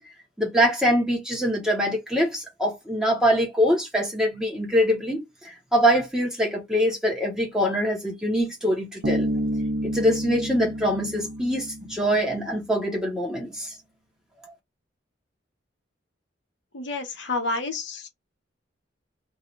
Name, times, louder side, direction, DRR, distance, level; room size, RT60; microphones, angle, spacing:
voice 1, 0.4-9.3 9.8-13.8, equal, 5° right, 1.1 m, -24 dB
Bass guitar, 9.0-12.6, right 1 dB, 70° right, 0.8 m, -29 dB
voice 2, 16.7-18.1, left 3 dB, 65° left, 0.9 m, -29 dB
2.7 x 2.6 x 3.2 m
head